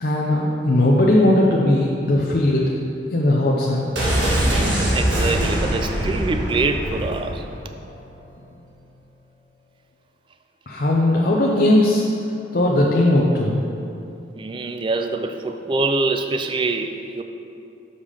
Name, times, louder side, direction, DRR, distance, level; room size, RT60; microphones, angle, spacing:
voice 1, 0.0-2.7 3.1-3.9 10.7-12.0 12.5-13.6, left 1 dB, 50° left, -3 dB, 0.6 m, -18 dB
sound 1, 3.9-7.7 8.0-8.1, right 1 dB, 80° right, 1.7 m, -22 dB
voice 2, 4.3-7.4 14.4-17.2, right 3 dB, 25° right, 7 dB, 0.3 m, -25 dB
6.7 x 5.5 x 5.0 m, 2.7 s
head